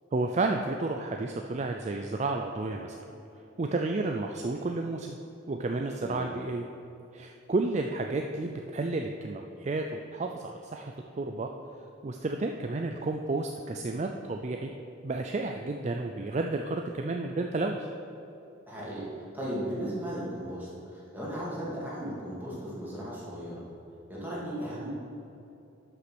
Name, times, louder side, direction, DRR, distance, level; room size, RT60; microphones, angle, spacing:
voice 1, 0.1-3.0 3.6-5.2 5.5-6.7 7.1-9.8 10.1-11.5 12.0-14.7 15.0-17.9, right 2 dB, 35° right, 3 dB, 0.4 m, -31 dB
voice 2, 18.7-23.6 24.1-24.9, equal, 10° right, -7 dB, 2.6 m, -36 dB
11.5 x 5.8 x 6.1 m, 2.7 s
head